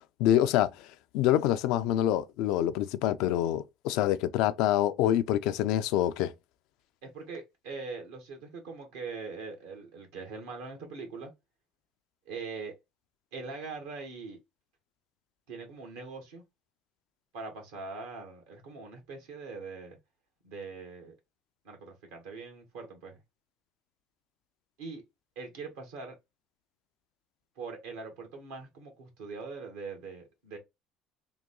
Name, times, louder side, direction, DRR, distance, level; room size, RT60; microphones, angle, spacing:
voice 1, 0.2-0.7 1.1-6.3, left 12 dB, 70° left, 0.4 m, -26 dB
voice 2, 7.0-11.3 12.2-12.7 13.3-14.4 15.5-16.4 17.3-20.0 20.4-21.1 21.6-23.2 24.8-25.0 25.3-26.1 27.5-30.6, right 4 dB, 80° right, 1.6 m, -42 dB
3.8 x 2.3 x 3.7 m
hypercardioid pair, 70°, 0 cm